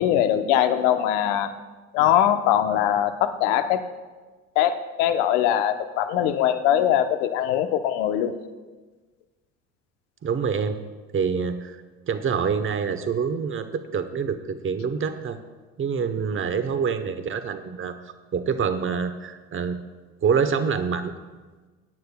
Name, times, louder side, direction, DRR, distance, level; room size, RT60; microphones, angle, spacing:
voice 1, 0.0-1.5 1.9-3.8 4.6-8.3, left 10 dB, 70° left, 8 dB, 0.9 m, -21 dB
voice 2, 10.2-10.8 11.1-11.8 12.1-15.4 15.8-18.0 18.3-19.8 20.2-21.1, right 6 dB, 30° right, 10 dB, 1.0 m, -26 dB
21.0 x 9.3 x 2.3 m, 1.3 s
hypercardioid pair, 70°, 39 cm